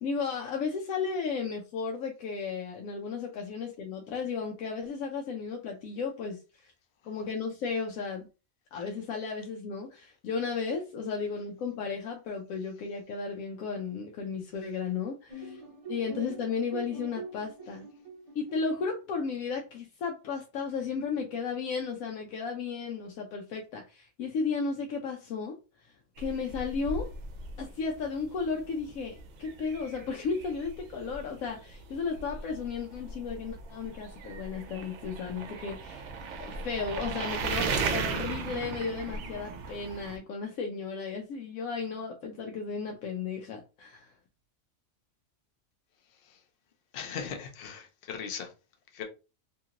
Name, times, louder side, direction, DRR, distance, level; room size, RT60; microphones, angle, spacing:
voice 1, 0.0-6.7 7.0-8.3 8.7-15.6 15.9-17.9 18.3-25.5 25.8-27.1 27.6-36.1 36.4-44.1, left 5 dB, 85° left, 1.0 m, -34 dB
sound 1, 15.3-19.0, right 3 dB, 40° right, 0.5 m, -43 dB
sound 2, 26.2-40.2, right 4 dB, 70° right, 0.8 m, -37 dB
voice 2, 46.9-48.5 48.9-49.0, left 7 dB, 55° left, 0.8 m, -38 dB
2.8 x 2.8 x 2.4 m
omnidirectional pair, 1.4 m